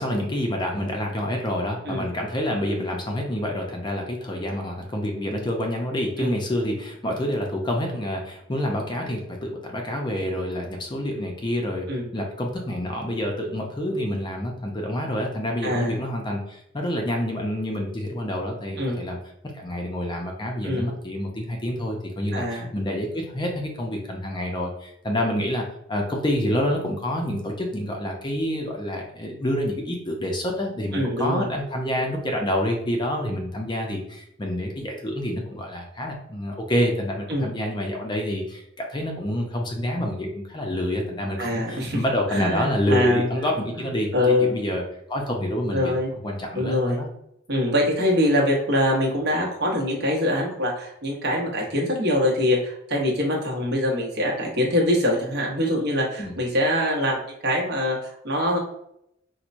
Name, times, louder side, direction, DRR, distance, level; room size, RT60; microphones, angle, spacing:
voice 1, 0.0-11.9 12.1-19.2 19.5-44.8 45.1-46.0 46.2-47.1 56.2-56.3, left 1 dB, 25° left, 1 dB, 0.5 m, -27 dB
voice 2, 15.6-16.0 18.8-19.0 20.6-20.9 22.3-22.7 30.9-31.5 37.3-37.5 41.4-42.0 42.3-43.3 43.8-43.9 44.1-44.6 45.7-46.1 46.5-47.0 47.5-58.6, left 1 dB, 55° right, -1 dB, 0.9 m, -24 dB
4.4 x 2.1 x 2.5 m, 0.76 s
head